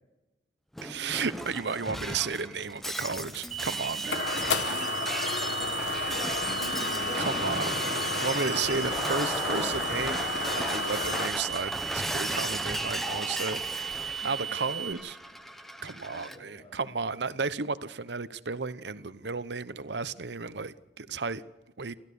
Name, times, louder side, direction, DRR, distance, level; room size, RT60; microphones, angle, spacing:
Shatter, 0.8-16.4, equal, ahead, 1.0 m, -36 dB
voice 1, 0.8-4.3 7.2-10.2 10.6-13.6 14.2-15.2 15.8-21.4 21.8-21.9, right 4 dB, 70° right, 0.9 m, -33 dB
voice 2, 1.4-1.9 4.0-7.7 12.2-12.3 14.0-14.7 15.5-16.8 17.3-17.4, equal, 35° left, 7.8 m, -44 dB
sound 1, 3.3-11.3, left 4 dB, 70° left, 1.3 m, -32 dB
sound 2, 3.5-14.9, right 9 dB, 45° right, 1.2 m, -36 dB
29.0 x 13.0 x 6.9 m
head